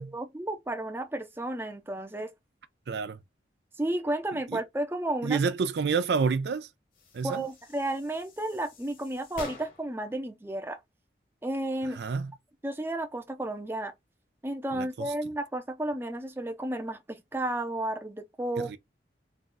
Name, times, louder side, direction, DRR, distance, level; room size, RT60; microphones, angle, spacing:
voice 1, 0.0-2.3 3.8-5.4 7.2-10.8 11.4-12.0 12.6-13.9 14.4-18.8, right 1 dB, 10° right, 0.6 m, -32 dB
voice 2, 2.9-3.2 5.2-6.7 7.1-7.4 12.0-12.3 14.7-14.8 18.6-18.7, right 5 dB, 65° right, 0.4 m, -28 dB
sound 1, 6.9-10.0, left 2 dB, 50° left, 1.2 m, -46 dB
3.8 x 2.3 x 3.8 m
head